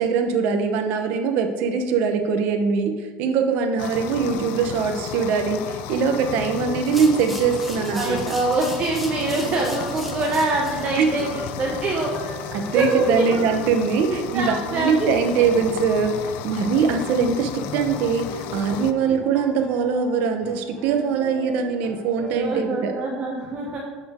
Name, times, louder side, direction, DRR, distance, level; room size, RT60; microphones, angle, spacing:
voice 1, 0.0-8.4 11.0-11.1 12.5-22.9, right 5 dB, 65° right, 5 dB, 0.9 m, -22 dB
sound 1, 3.8-18.9, left 10 dB, 65° left, 0.5 m, -35 dB
sound 2, 4.0-22.5, left 1 dB, 25° left, 1.8 m, -40 dB
sound 3, 6.8-10.9, equal, ahead, 1.1 m, -39 dB
voice 2, 7.9-12.3 12.7-13.4 14.1-15.1 22.3-23.8, right 2 dB, 40° right, -2 dB, 1.1 m, -25 dB
12.5 x 4.3 x 3.7 m, 1.4 s
supercardioid pair, 125°, 3 cm